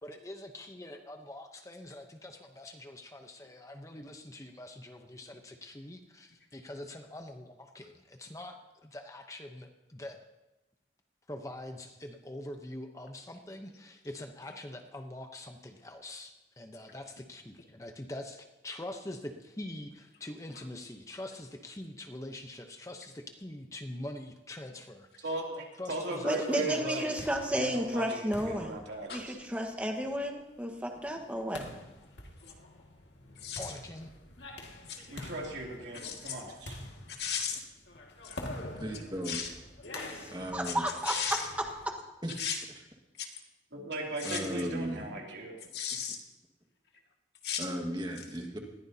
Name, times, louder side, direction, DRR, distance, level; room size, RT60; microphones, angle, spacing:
voice 1, 0.0-10.2 11.3-25.3 25.8-26.9 33.6-34.1, left 1 dB, 20° left, 5 dB, 0.8 m, -44 dB
voice 2, 25.2-27.1 27.5-29.4 35.1-36.8 43.7-45.6, right 2 dB, 85° right, -1 dB, 2.9 m, -37 dB
voice 3, 26.2-28.8 29.1-31.6 39.9-41.7, equal, 10° right, 3 dB, 1.4 m, -32 dB
sound 1, 26.8-42.0, left 2 dB, 90° left, 2.0 m, -47 dB
voice 4, 33.4-33.7 34.9-35.0 35.9-36.4 37.1-37.7 38.2-38.4 39.3-39.5 40.7-40.8 41.1-41.5 42.4-42.6 43.2-43.4 44.2-44.5 45.7-46.2 47.4-47.7, left 7 dB, 65° left, 2 dB, 2.0 m, -35 dB
voice 5, 38.8-39.4 40.3-40.9 42.2-42.3 44.2-45.1 47.6-48.6, right 1 dB, 25° right, 2 dB, 1.7 m, -36 dB
20.0 x 15.0 x 2.8 m, 1.0 s
head